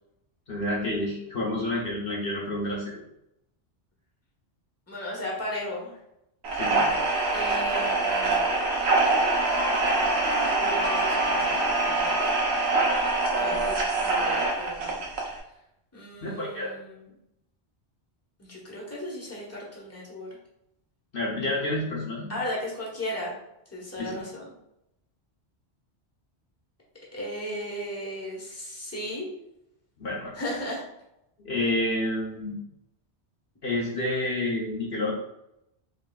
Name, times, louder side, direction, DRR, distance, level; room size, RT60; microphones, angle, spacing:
voice 1, 0.5-2.9 6.6-6.9 16.2-16.7 21.1-22.3 24.0-24.2 30.0-30.3 31.4-32.6 33.6-35.1, left 1 dB, 55° left, -4 dB, 1.0 m, -29 dB
voice 2, 4.9-6.0 7.3-8.6 10.4-12.3 13.4-15.1 15.9-17.1 18.4-20.3 22.3-23.3 23.7-24.5 27.1-29.3 30.3-30.8, left 1 dB, 15° left, -4 dB, 1.1 m, -36 dB
sound 1, 6.4-15.4, right 2 dB, 70° right, 1.1 m, -24 dB
5.1 x 3.2 x 2.3 m, 0.83 s
omnidirectional pair, 1.1 m